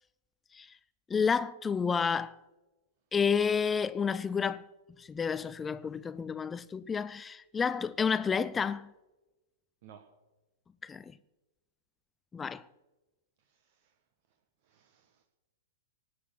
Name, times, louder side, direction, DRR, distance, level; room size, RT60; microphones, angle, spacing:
voice 1, 1.1-2.4 3.1-4.6 5.0-8.9 10.8-11.1 12.3-12.6, left 6 dB, 15° left, 0.4 m, -30 dB
voice 2, 13.4-14.0 14.3-14.4 14.6-15.2, right 9 dB, 50° right, 1.6 m, -58 dB
18.0 x 9.5 x 7.3 m
figure-of-eight pair, 105°, 0 cm